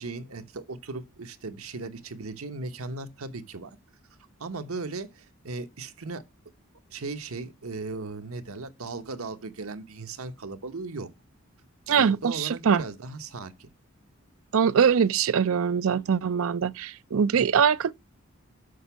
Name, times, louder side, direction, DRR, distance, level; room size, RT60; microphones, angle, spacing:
voice 1, 0.0-3.8 4.4-6.2 6.9-11.1 11.9-13.7, right 3 dB, 90° right, 1.0 m, -37 dB
voice 2, 11.9-12.8 14.5-17.9, right 7 dB, 70° right, 0.4 m, -23 dB
6.5 x 6.0 x 5.6 m
head